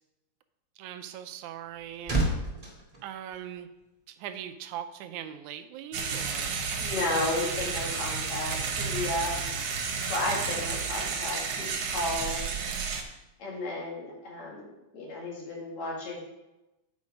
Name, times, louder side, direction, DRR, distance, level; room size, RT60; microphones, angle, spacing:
voice 1, 0.8-2.2 3.0-3.7 4.1-6.7, right 10 dB, 85° right, 9 dB, 2.0 m, -40 dB
sound 1, 1.3-4.0 4.3-4.5, right 2 dB, 20° right, 1.2 m, -32 dB
sound 2, 5.9-13.0, right 5 dB, 65° right, 2.0 m, -32 dB
voice 2, 6.8-9.5 10.1-12.4 13.4-16.2, left 2 dB, 65° left, -4 dB, 3.4 m, -33 dB
8.4 x 5.4 x 5.1 m, 0.96 s
omnidirectional pair, 3.5 m